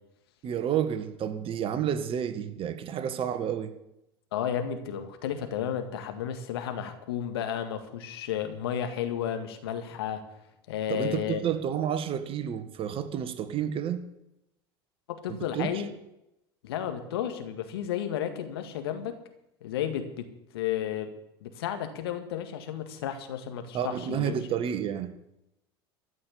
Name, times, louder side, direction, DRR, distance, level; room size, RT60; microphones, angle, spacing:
voice 1, 0.4-3.7 10.9-14.0 15.3-15.7 23.7-25.1, right 9 dB, 45° right, 10 dB, 1.6 m, -30 dB
voice 2, 4.3-10.2 10.7-11.4 15.2-15.9 16.6-19.1 19.6-20.3 20.5-21.1 21.4-24.4, left 9 dB, 75° left, 7 dB, 1.9 m, -32 dB
14.0 x 6.5 x 9.9 m, 0.86 s
hypercardioid pair, 80°, 13 cm